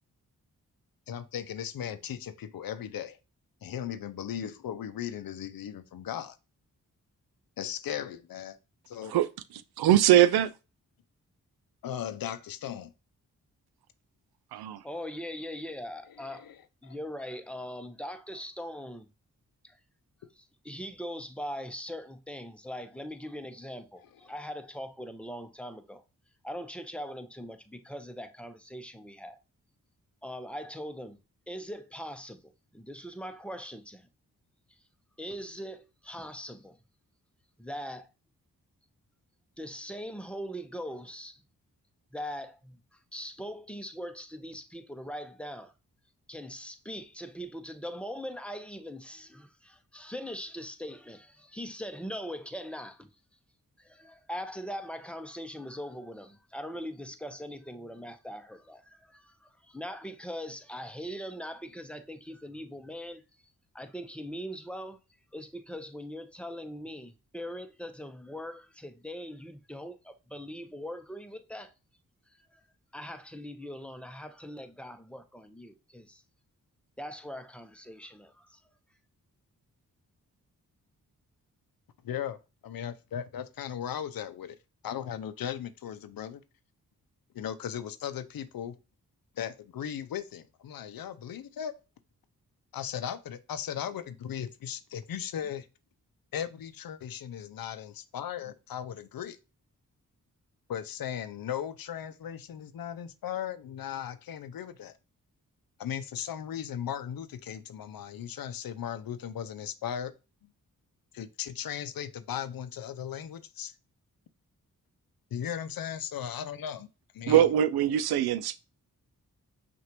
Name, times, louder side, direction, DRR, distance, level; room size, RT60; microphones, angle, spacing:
voice 1, 1.1-3.2 3.6-6.4 7.6-8.6 8.9-9.2 11.8-12.9 16.2-16.6 16.8-16.9 82.0-82.4 82.6-84.6 84.8-86.4 87.3-88.7 89.4-91.7 92.7-95.7 96.3-99.4 100.7-105.0 105.8-110.1 111.1-113.7 115.3-116.9 117.1-117.5, left 9 dB, 70° left, 0.6 m, -37 dB
voice 2, 9.8-10.5 14.5-14.8 117.3-118.6, right 11 dB, 80° right, 0.5 m, -22 dB
voice 3, 14.8-16.5 16.8-19.1 19.6-19.8 20.3-26.0 26.4-29.4 30.2-31.2 31.5-34.1 34.7-34.8 35.2-36.8 37.6-38.1 39.6-41.4 42.1-45.7 46.3-53.1 53.8-63.2 63.7-65.0 65.3-71.7 72.3-72.6 72.9-76.2 77.0-78.6, equal, 5° left, 0.8 m, -41 dB
5.8 x 2.6 x 3.0 m
supercardioid pair, 40°, 37 cm